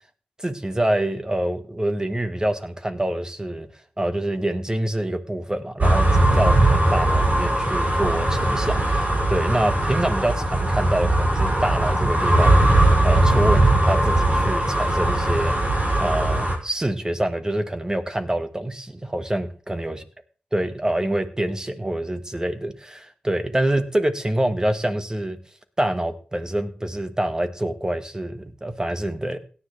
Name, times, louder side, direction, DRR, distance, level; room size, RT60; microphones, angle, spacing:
voice 1, 0.4-3.7 4.0-6.1 6.3-20.0 20.5-25.4 25.8-29.4, right 1 dB, 20° right, 9 dB, 1.4 m, -26 dB
sound 1, 5.8-16.5, right 1 dB, 50° right, 5.4 m, -19 dB
17.0 x 10.0 x 3.3 m, 0.40 s
cardioid pair, 60°, 3 cm